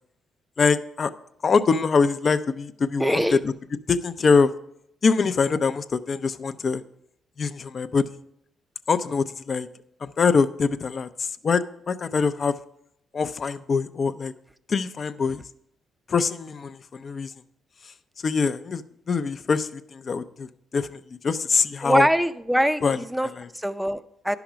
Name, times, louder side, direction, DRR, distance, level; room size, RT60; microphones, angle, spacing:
voice 1, 0.6-1.1 1.4-3.5 3.9-4.5 5.0-6.8 7.4-8.2 8.9-9.7 10.0-12.5 13.1-14.3 14.7-15.4 16.1-17.3 18.2-18.8 19.1-22.1 22.8-23.0 23.4-23.5, left 5 dB, 45° left, 12 dB, 0.5 m, -24 dB
voice 2, 3.0-3.4 21.8-23.3 23.5-24.4, equal, 5° right, 11 dB, 0.5 m, -23 dB
10.5 x 5.9 x 5.0 m, 0.74 s
cardioid pair, 90°, 0 cm